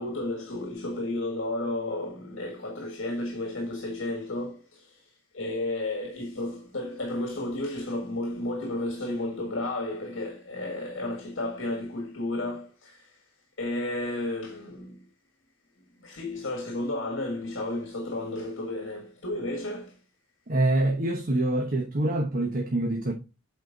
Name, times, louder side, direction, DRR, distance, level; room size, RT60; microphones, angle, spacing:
voice 1, 0.0-5.0 5.3-13.2 13.6-15.0 16.0-20.0, left 1 dB, 70° left, 1.7 m, -32 dB
voice 2, 20.5-23.1, right 1 dB, 45° right, 1.1 m, -25 dB
8.1 x 4.3 x 3.9 m
head